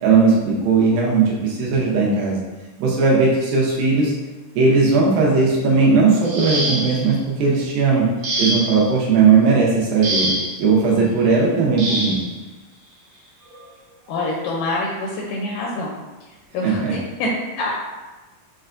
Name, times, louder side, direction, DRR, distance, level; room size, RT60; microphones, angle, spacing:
voice 1, 0.0-2.4 2.8-4.1 4.6-8.1 8.4-10.3 10.6-12.2 16.8-16.9, right 4 dB, 85° right, -4 dB, 2.4 m, -17 dB
sound 1, 6.2-7.1 8.2-8.9 10.0-10.6 11.8-12.3 13.5-13.6 14.1-14.3, right 1 dB, 70° right, 1.5 m, -24 dB
voice 2, 14.1-16.0 16.3-17.8, left 2 dB, 80° left, -3 dB, 2.0 m, -26 dB
6.3 x 2.2 x 2.5 m, 1.2 s
omnidirectional pair, 4.0 m